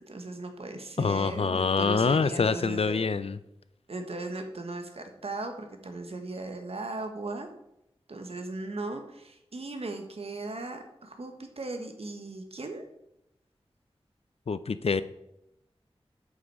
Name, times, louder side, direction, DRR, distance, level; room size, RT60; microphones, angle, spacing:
voice 1, 0.1-3.0 3.9-7.5 8.1-12.8, right 2 dB, 70° right, 5 dB, 1.4 m, -37 dB
voice 2, 1.0-3.4 14.5-15.0, left 5 dB, 70° left, 14 dB, 0.5 m, -26 dB
8.2 x 7.6 x 4.8 m, 0.83 s
wide cardioid pair, 75°, 10 cm